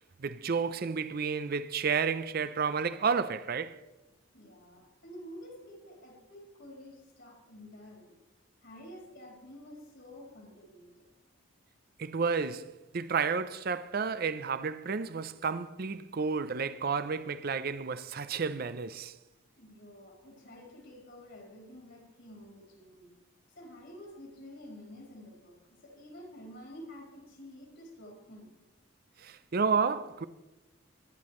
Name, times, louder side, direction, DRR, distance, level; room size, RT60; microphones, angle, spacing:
voice 1, 0.2-3.8 12.0-19.1 29.2-30.3, right 5 dB, 45° right, 0.5 m, -31 dB
voice 2, 4.3-8.1 8.6-11.0 19.6-23.1 23.5-28.5, equal, 60° left, 3.9 m, -50 dB
23.0 x 10.5 x 3.1 m
head